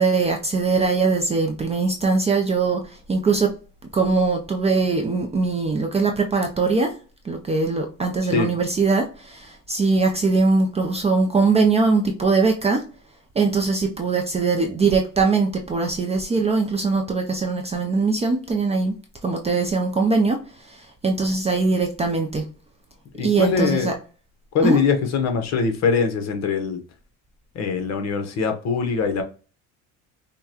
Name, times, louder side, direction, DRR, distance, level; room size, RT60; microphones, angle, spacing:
voice 1, 0.0-3.5 3.9-7.0 7.2-12.9 13.4-19.0 19.2-22.4 23.2-23.9 24.6-24.8, right 4 dB, 20° right, 0.5 m, -21 dB
voice 2, 23.2-23.9 24.5-26.8 27.5-29.2, left 5 dB, 45° left, 1.0 m, -22 dB
5.6 x 2.2 x 2.8 m
cardioid pair, 125°, 36 cm